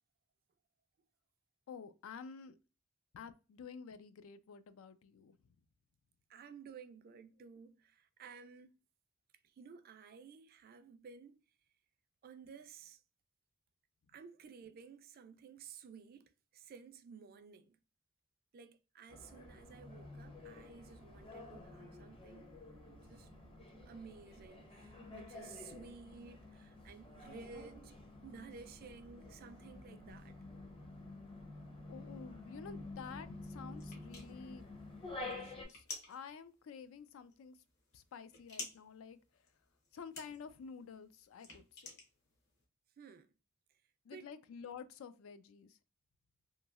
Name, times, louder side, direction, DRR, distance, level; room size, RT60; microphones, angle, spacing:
voice 1, 1.7-2.6 3.1-5.4 31.9-34.7 35.1-37.6 37.9-39.2 39.9-42.0 44.1-45.8, left 6 dB, 70° left, 0.3 m, -50 dB
voice 2, 6.3-8.8 9.4-11.4 12.2-13.0 14.1-17.8 18.5-22.5 23.1-23.3 23.8-27.9 28.2-30.4 43.0-43.3 44.1-44.3, right 5 dB, 45° right, 0.3 m, -54 dB
sound 1, 19.1-35.6, left 2 dB, 25° left, 0.6 m, -50 dB
sound 2, 33.8-42.6, left 3 dB, 50° left, 0.9 m, -52 dB
2.9 x 2.7 x 2.3 m
head